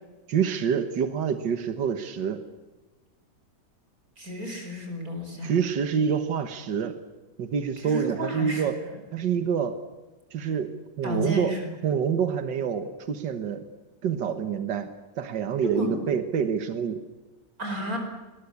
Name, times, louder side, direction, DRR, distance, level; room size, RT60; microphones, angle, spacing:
voice 1, 0.3-2.4 5.4-7.0 7.4-8.8 9.1-9.8 10.3-11.5 11.8-13.6 14.0-14.9 15.2-17.0, right 7 dB, 80° right, 8 dB, 2.0 m, -27 dB
voice 2, 4.2-5.5 7.8-8.7 11.0-11.7 15.6-16.0 17.6-18.0, equal, 50° right, 4 dB, 5.3 m, -31 dB
22.0 x 21.5 x 8.5 m, 1.2 s
omnidirectional pair, 1.9 m